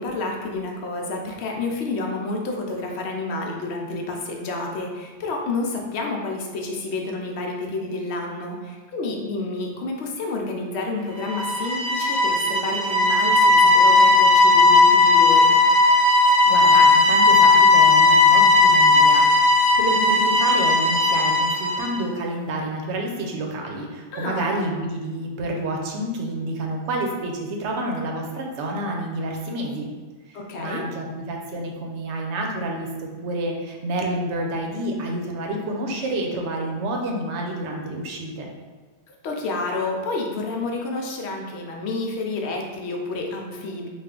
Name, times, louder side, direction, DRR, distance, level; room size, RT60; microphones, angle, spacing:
voice 1, 0.0-15.5 24.1-24.5 30.3-30.9 39.1-43.9, left 3 dB, 70° left, 1 dB, 0.8 m, -29 dB
sound 1, 11.2-22.0, left 3 dB, 45° right, 1.0 m, -16 dB
voice 2, 16.5-19.3 19.7-29.9 30.3-38.5, right 1 dB, 75° right, 0 dB, 0.9 m, -29 dB
3.3 x 2.4 x 3.6 m, 1.3 s
omnidirectional pair, 1.2 m